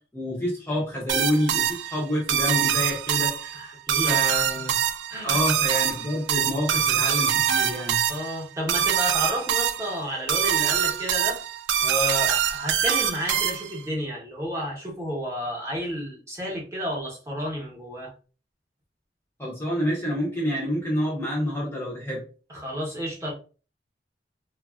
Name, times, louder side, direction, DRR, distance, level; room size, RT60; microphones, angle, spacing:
voice 1, 0.1-3.8 4.0-4.8 5.2-8.0 19.4-22.3, left 1 dB, 15° left, 0.6 m, -28 dB
sound 1, 1.1-13.9, right 9 dB, 90° right, 0.3 m, -24 dB
voice 2, 3.5-4.2 5.1-5.4 8.1-11.4 11.8-18.1 22.5-23.3, equal, 15° right, 0.8 m, -31 dB
3.1 x 2.3 x 2.3 m
head